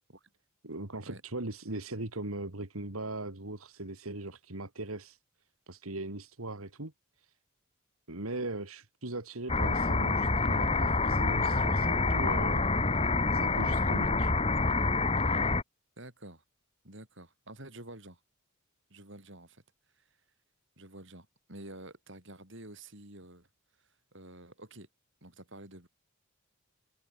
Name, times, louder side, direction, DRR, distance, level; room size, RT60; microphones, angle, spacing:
voice 1, 0.6-5.2 5.7-6.9 7.2-7.3 8.1-12.7 13.3-14.4, right 2 dB, 85° right, 2.8 m, -39 dB
sound 1, 9.5-15.6, left 3 dB, 30° left, 1.6 m, -27 dB
voice 2, 16.0-16.4 16.8-18.2 18.9-19.6 20.0-20.1 20.8-23.5 24.1-24.9 25.2-25.9, right 1 dB, 60° right, 7.6 m, -49 dB
head